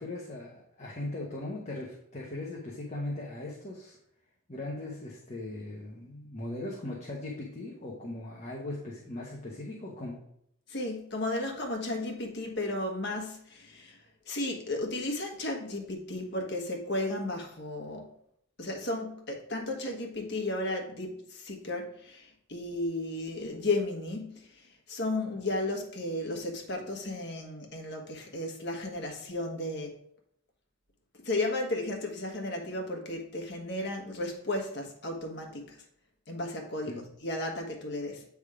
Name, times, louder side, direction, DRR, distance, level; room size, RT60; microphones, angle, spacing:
voice 1, 0.0-4.0 4.5-10.2 36.8-37.0, left 2 dB, 35° left, -2 dB, 1.0 m, -39 dB
voice 2, 10.7-18.1 18.6-29.9 31.2-35.8 36.3-38.3, left 2 dB, 55° left, 1 dB, 1.4 m, -34 dB
8.2 x 3.6 x 4.8 m, 0.70 s
head